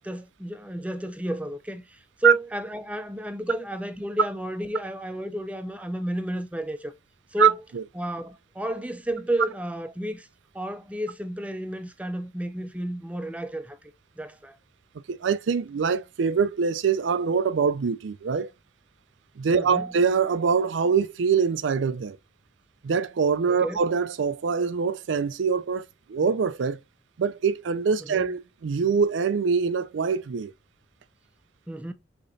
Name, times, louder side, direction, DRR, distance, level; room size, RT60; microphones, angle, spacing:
voice 1, 0.0-6.9 7.3-7.6 8.0-10.3 10.5-13.8 14.2-14.6 19.5-19.9 23.5-23.8 28.1-28.3 31.7-31.9, right 1 dB, 5° right, 0.5 m, -31 dB
voice 2, 15.1-18.5 19.4-22.2 22.8-26.8 27.2-30.5, right 6 dB, 85° right, 0.4 m, -24 dB
6.4 x 2.9 x 2.6 m
head